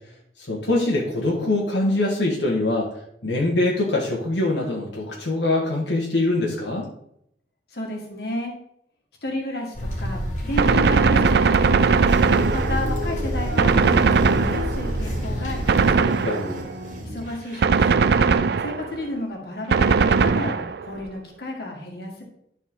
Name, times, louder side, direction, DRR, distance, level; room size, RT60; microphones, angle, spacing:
voice 1, 0.5-3.0 3.2-6.9 15.9-16.6, left 2 dB, 80° left, -3 dB, 1.5 m, -23 dB
voice 2, 7.7-8.5 9.2-12.1 12.5-15.9 17.0-18.3 18.6-22.2, left 1 dB, 60° left, 0 dB, 1.9 m, -32 dB
sound 1, 9.7-15.9, equal, 40° left, 2.1 m, -28 dB
Gunshot gunfire, 10.6-13.1 13.6-15.0 15.7-16.7 17.6-19.0 19.7-20.9, right 5 dB, 60° right, 0.4 m, -19 dB
sound 2, 12.0-17.6, left 1 dB, 45° right, 2.1 m, -34 dB
11.5 x 4.4 x 3.7 m, 0.73 s
head